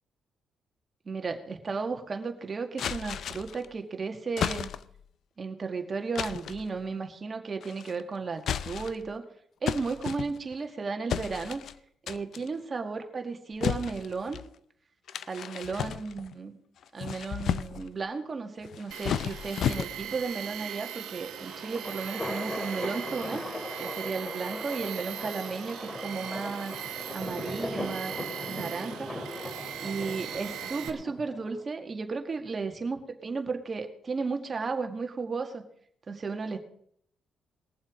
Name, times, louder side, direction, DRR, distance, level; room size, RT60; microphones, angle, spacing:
voice 1, 1.1-4.7 5.4-9.2 9.6-11.6 12.0-14.4 15.3-16.6 16.9-23.4 23.8-26.7 27.1-29.5 29.8-35.6 36.1-36.6, right 4 dB, 35° right, 5 dB, 1.9 m, -34 dB
sound 1, 2.8-3.7 4.4-5.0 6.2-6.7 7.6-8.0 8.4-9.1 9.7-10.6 11.1-11.7 12.1-12.5 13.6-14.5 15.1-16.3 16.8-17.9 18.6-20.2, left 9 dB, 65° left, 0.5 m, -33 dB
Tools, 18.9-30.9, right 10 dB, 90° right, 1.3 m, -40 dB
sound 2, 21.2-31.6, left 1 dB, 15° left, 2.8 m, -38 dB
20.5 x 7.3 x 5.1 m, 0.66 s
cardioid pair, 90°, 0 cm